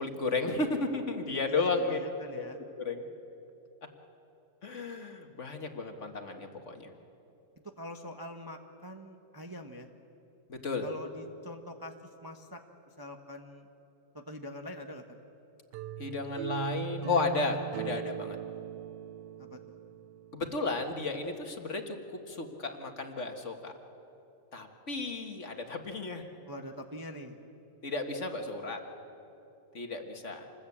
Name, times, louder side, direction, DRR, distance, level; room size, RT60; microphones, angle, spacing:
voice 1, 0.0-2.0 2.4-2.5 2.8-3.1 4.6-6.9 10.5-10.9 16.0-18.4 20.3-23.7 24.5-26.3 27.8-28.8 29.7-30.5, left 3 dB, 45° left, 4 dB, 1.9 m, -33 dB
voice 2, 1.5-2.6 7.8-9.9 10.8-11.9 12.2-12.6 13.0-13.7 14.1-15.2 19.4-19.8 26.5-27.4, left 1 dB, 15° right, 4 dB, 0.9 m, -44 dB
sound 1, 15.7-20.6, right 9 dB, 90° right, 1.4 m, -39 dB
27.0 x 20.5 x 8.6 m, 2.8 s
omnidirectional pair, 1.8 m